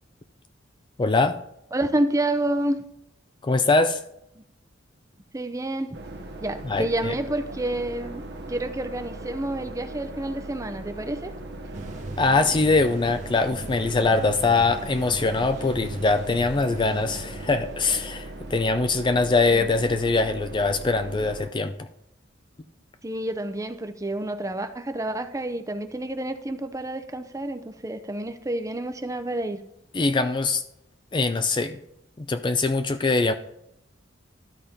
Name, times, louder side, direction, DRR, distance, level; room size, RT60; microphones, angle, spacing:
voice 1, 1.0-1.4 3.4-4.0 6.6-7.1 12.2-21.9 29.9-30.6 31.1-31.8 32.2-33.3, left 3 dB, 25° left, 9 dB, 0.4 m, -23 dB
voice 2, 1.7-2.8 4.4-4.5 5.3-6.0 6.4-11.3 19.5-19.7 23.0-29.6, right 1 dB, 15° right, 8 dB, 0.6 m, -29 dB
sound 1, 5.9-21.5, right 2 dB, 60° right, 1.1 m, -39 dB
sound 2, 11.7-17.8, right 2 dB, 40° right, 1.1 m, -39 dB
12.5 x 4.3 x 5.0 m, 0.78 s
head